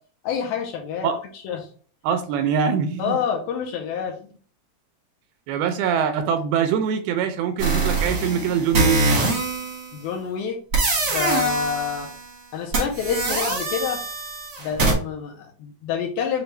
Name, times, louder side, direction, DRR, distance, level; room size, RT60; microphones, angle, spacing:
voice 1, 0.2-1.1 1.4-1.7 3.0-4.3 9.9-10.6 11.1-12.1 12.5-14.0 14.6-16.4, left 7 dB, 80° left, 1 dB, 2.3 m, -27 dB
voice 2, 2.0-3.2 5.5-9.3, right 7 dB, 80° right, 7 dB, 2.3 m, -23 dB
sound 1, 7.6-9.9 10.7-12.3 12.7-14.9, right 3 dB, 60° right, 1.2 m, -24 dB
6.7 x 2.4 x 3.1 m, 0.43 s
omnidirectional pair, 4.7 m